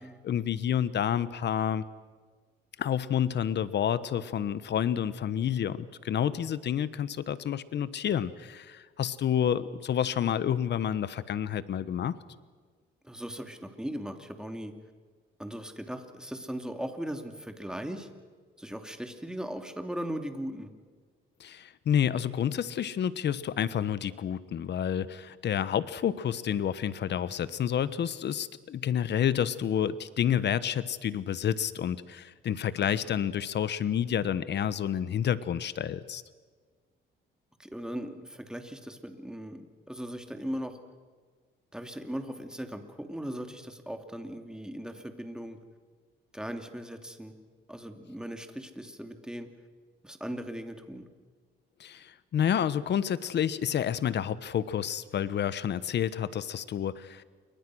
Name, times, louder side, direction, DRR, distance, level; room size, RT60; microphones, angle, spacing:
voice 1, 0.2-1.8 2.8-12.1 21.4-36.2 51.8-57.2, left 9 dB, 60° left, 15 dB, 1.2 m, -29 dB
voice 2, 13.0-14.7 15.4-18.1 18.6-20.7 32.8-33.1 37.6-40.8 41.7-45.6 46.3-47.3 47.7-49.5 50.0-51.1, equal, 5° right, 6 dB, 2.8 m, -38 dB
28.5 x 24.0 x 6.4 m, 1.5 s
cardioid pair, 90°, 20 cm